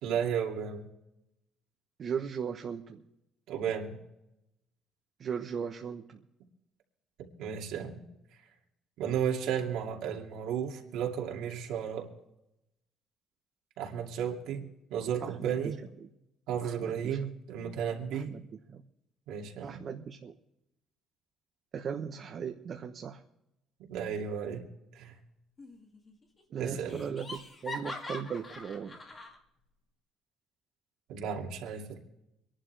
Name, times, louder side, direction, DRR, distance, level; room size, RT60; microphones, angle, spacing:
voice 1, 0.0-0.9 3.5-4.0 7.2-8.1 9.0-12.1 13.8-14.6 14.9-15.8 16.5-18.3 19.3-19.8 23.8-24.7 24.9-25.2 26.6-27.0 31.1-32.0, right 8 dB, 75° right, 1 dB, 2.5 m, -34 dB
voice 2, 2.0-3.0 5.2-6.1 15.2-15.7 16.6-17.2 18.1-18.8 19.6-20.3 21.7-23.2 26.5-29.0, right 7 dB, 35° right, 3 dB, 1.0 m, -38 dB
Laughter, 25.6-26.1 26.4-26.5 26.9-29.4, left 2 dB, 25° left, 2.0 m, -43 dB
25.5 x 11.5 x 3.4 m, 0.86 s
cardioid pair, 165°, 0 cm